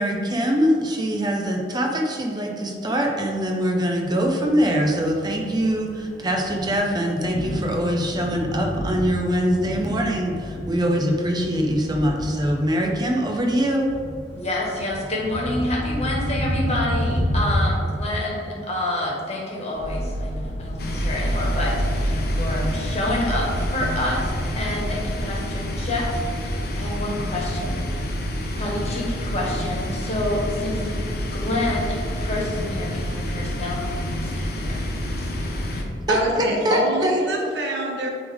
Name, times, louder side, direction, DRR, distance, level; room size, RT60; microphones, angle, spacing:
voice 1, 0.0-13.9 36.1-37.2, equal, 25° right, 1 dB, 0.6 m, -23 dB
Thunder, 4.3-17.9, equal, 25° left, 1.5 m, -29 dB
voice 2, 14.3-24.3 24.6-27.9 28.5-30.8 31.3-34.7 35.2-35.3, left 1 dB, 40° left, -3 dB, 1.5 m, -28 dB
sound 1, 19.7-25.2, right 1 dB, 80° left, 1.4 m, -29 dB
sound 2, 20.8-35.8, left 1 dB, 60° left, 0.9 m, -28 dB
voice 3, 36.1-38.1, right 1 dB, 90° right, 0 dB, 1.2 m, -24 dB
9.6 x 3.5 x 3.5 m, 2.4 s
head